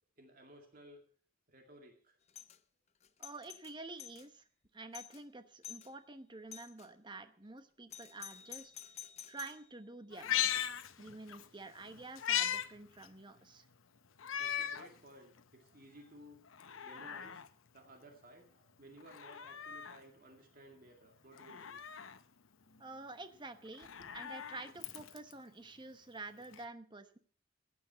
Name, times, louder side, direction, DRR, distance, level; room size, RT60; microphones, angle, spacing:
voice 1, 0.2-1.0 1.5-2.2 14.0-16.5 16.8-17.4 17.7-21.8 22.1-22.2 24.0-24.1, right 1 dB, 45° right, 3 dB, 2.2 m, -57 dB
Doorbell, 2.3-2.6 3.0-4.3 4.6-4.7 4.9-5.2 5.6-5.9 6.5-6.9 7.9-9.6, left 11 dB, 30° left, 0.6 m, -50 dB
voice 2, 3.2-4.4 4.7-10.7 11.0-13.6 22.8-23.9 24.1-27.2, right 3 dB, 20° right, 10 dB, 1.0 m, -49 dB
Meow, 10.1-11.5 11.8-12.7 13.0-13.1 14.2-14.9 15.4-15.5 16.5-17.5 19.0-20.0 21.4-22.2 23.7-25.3 26.5-26.6, left 10 dB, 75° left, 0.8 m, -38 dB
15.5 x 9.3 x 5.8 m, 0.44 s
head